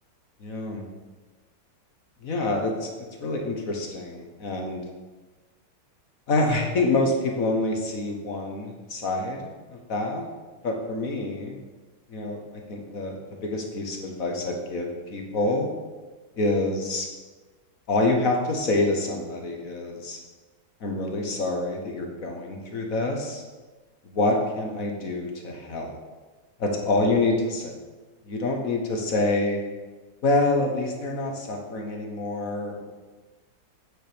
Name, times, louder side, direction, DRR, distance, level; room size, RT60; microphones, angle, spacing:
voice 1, 0.4-0.9 2.2-2.9 3.2-4.8 6.3-10.3 10.6-11.6 12.1-15.7 16.4-17.1 17.9-20.2 20.8-23.4 24.0-26.0 26.6-27.8 28.3-29.6 30.2-32.9, left 2 dB, 50° left, 2 dB, 1.6 m, -27 dB
9.0 x 7.5 x 5.1 m, 1.2 s
omnidirectional pair, 1.9 m